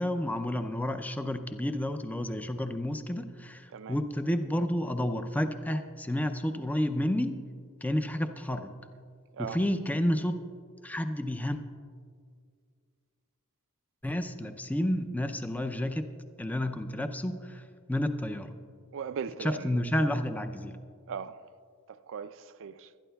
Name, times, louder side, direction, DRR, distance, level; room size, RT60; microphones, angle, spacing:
voice 1, 0.0-7.4 7.8-8.7 9.4-10.4 10.8-11.6 14.0-16.1 16.4-17.6 17.9-18.5 19.4-20.7, left 1 dB, 5° left, 0.4 m, -30 dB
voice 2, 18.9-19.8 21.1-21.4 21.9-22.9, right 6 dB, 60° right, 0.4 m, -38 dB
20.5 x 12.0 x 2.3 m
head